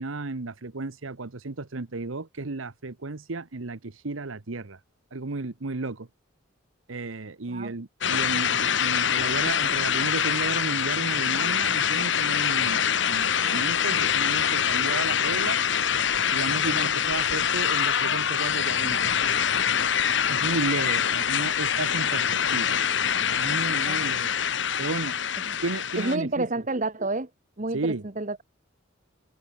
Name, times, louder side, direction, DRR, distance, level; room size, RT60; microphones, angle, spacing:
voice 1, 0.0-4.8 5.1-6.1 6.9-15.6 16.3-19.1 20.3-22.8 23.2-24.3 24.8-25.2 25.6-26.7 27.7-28.0, right 3 dB, 90° right, 1.1 m, -33 dB
sound 1, 8.0-26.2, left 8 dB, 65° left, 1.2 m, -25 dB
voice 2, 26.0-27.3 27.6-28.4, right 2 dB, 40° right, 1.3 m, -29 dB
head